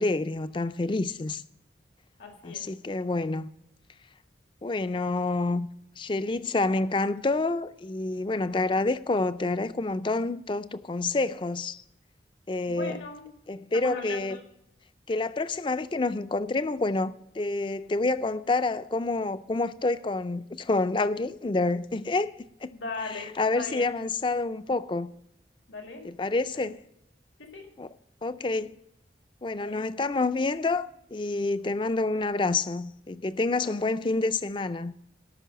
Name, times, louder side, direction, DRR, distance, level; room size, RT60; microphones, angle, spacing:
voice 1, 0.0-1.4 2.4-3.5 4.6-5.7 6.0-11.8 12.5-13.0 13.5-14.4 15.1-22.3 22.6-22.7 23.0-25.1 26.0-26.8 27.8-27.9 28.2-28.8 29.4-34.9, left 3 dB, 25° left, 0.4 m, -28 dB
voice 2, 2.2-2.7 12.7-13.2 13.7-14.4 22.7-23.3 23.5-23.9 25.7-26.0 26.5-26.7 27.4-27.7 29.6-29.8 33.6-33.9, left 3 dB, 90° left, 1.9 m, -38 dB
13.0 x 6.0 x 6.8 m
head